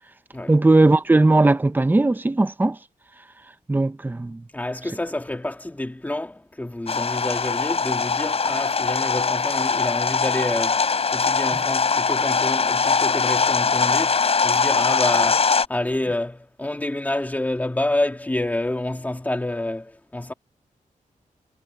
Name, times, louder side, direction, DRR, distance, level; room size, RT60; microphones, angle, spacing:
voice 1, 0.5-2.8 3.7-4.4, right 2 dB, 15° right, 0.8 m, -18 dB
voice 2, 4.5-20.3, left 1 dB, 10° left, 2.6 m, -28 dB
sound 1, 6.9-15.7, left 5 dB, 45° left, 5.2 m, -21 dB
wide cardioid pair, 130°, 14 cm